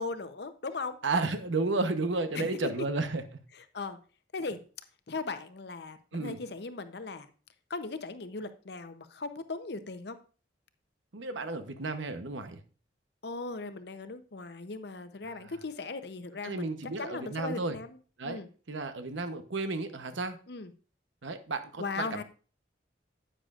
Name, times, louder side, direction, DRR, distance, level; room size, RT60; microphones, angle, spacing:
voice 1, 0.0-1.0 2.3-2.9 3.5-4.0 4.3-4.6 5.1-7.3 7.7-10.2 13.2-18.0 18.2-18.5 20.5-20.7 21.8-22.2, left 3 dB, 60° left, 10 dB, 0.7 m, -38 dB
voice 2, 1.0-3.2 6.1-6.4 11.1-12.6 16.4-17.8 18.2-18.4 18.7-20.4 21.2-22.2, right 3 dB, 85° right, 9 dB, 0.9 m, -32 dB
10.0 x 8.8 x 2.4 m, 0.37 s
head